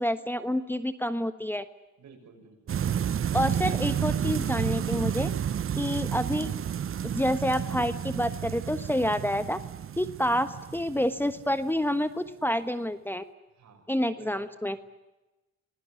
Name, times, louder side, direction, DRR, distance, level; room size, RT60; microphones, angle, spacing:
voice 1, 0.0-1.6 3.3-5.3 5.8-6.5 7.0-9.6 10.0-13.2 13.9-14.8, equal, 5° left, 12 dB, 1.3 m, -28 dB
voice 2, 2.0-2.8 5.5-6.2 10.1-10.3 13.6-13.9 14.1-14.5, right 5 dB, 65° right, 3 dB, 8.0 m, -52 dB
sound 1, 2.7-11.7, right 9 dB, 45° right, 0.9 m, -31 dB
27.0 x 20.0 x 9.7 m, 1.1 s
cardioid pair, 90°, 30 cm